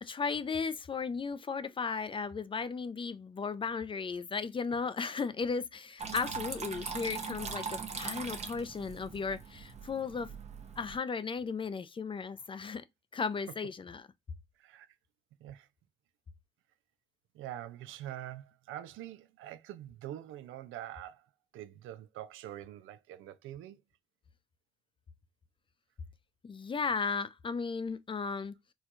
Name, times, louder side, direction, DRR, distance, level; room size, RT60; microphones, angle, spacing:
voice 1, 0.0-10.3 10.8-12.8 13.1-14.1 26.4-28.5, left 5 dB, 25° left, 0.4 m, -35 dB
Water tap faucet / Trickle dribble, 6.0-11.0, right 5 dB, 35° right, 0.7 m, -41 dB
voice 2, 17.3-21.3 21.5-23.8, right 12 dB, 80° right, 0.4 m, -45 dB
4.4 x 2.2 x 2.4 m
cardioid pair, 90°, 20 cm